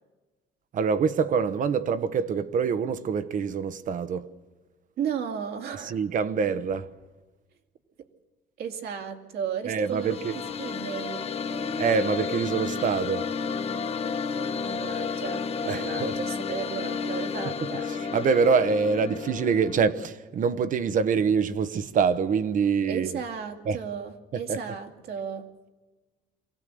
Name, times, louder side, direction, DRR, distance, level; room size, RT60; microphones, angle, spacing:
voice 1, 0.7-4.3 5.8-6.9 9.7-10.3 11.8-13.3 15.7-16.1 17.6-23.1 23.6-23.8 24.3-24.6, right 5 dB, 50° right, 1.2 m, -25 dB
voice 2, 5.0-6.0 8.6-10.2 10.6-11.2 14.7-17.9 22.9-25.5, right 7 dB, 65° right, 2.6 m, -34 dB
sound 1, 9.7-19.9, left 5 dB, 35° left, 1.2 m, -32 dB
24.0 x 16.5 x 7.8 m
cardioid pair, 110°, 17 cm